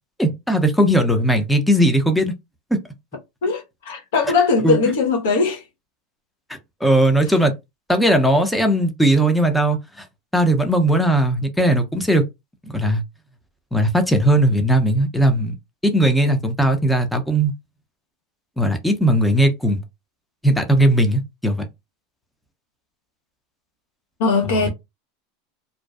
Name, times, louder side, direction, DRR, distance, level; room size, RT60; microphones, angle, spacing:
voice 1, 0.2-2.3 4.6-4.8 6.5-7.5 7.9-10.0 10.3-12.2 12.7-13.0 13.7-15.5 15.8-17.5 18.6-19.8 20.4-21.7, right 1 dB, 5° left, 0.5 m, -18 dB
voice 2, 3.4-5.6 24.2-24.7, left 4 dB, 70° left, 0.7 m, -20 dB
2.5 x 2.2 x 2.3 m
hypercardioid pair, 90°, 0 cm